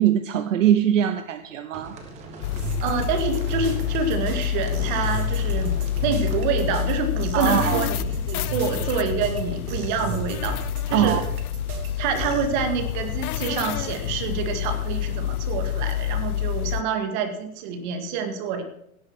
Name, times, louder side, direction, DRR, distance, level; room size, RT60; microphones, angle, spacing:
voice 1, 0.0-1.9 7.3-7.9 10.9-11.3, right 10 dB, 60° right, 10 dB, 1.0 m, -22 dB
sound 1, 1.7-6.7, right 3 dB, 15° right, 1.2 m, -41 dB
sound 2, 2.4-16.8, left 12 dB, 85° left, 0.6 m, -28 dB
sound 3, 2.6-12.5, right 8 dB, 80° right, 3.2 m, -35 dB
voice 2, 2.8-10.6 10.9-11.2 12.0-18.6, right 5 dB, 35° right, 7 dB, 1.9 m, -27 dB
17.0 x 7.8 x 6.1 m, 0.76 s
hypercardioid pair, 170°, 43 cm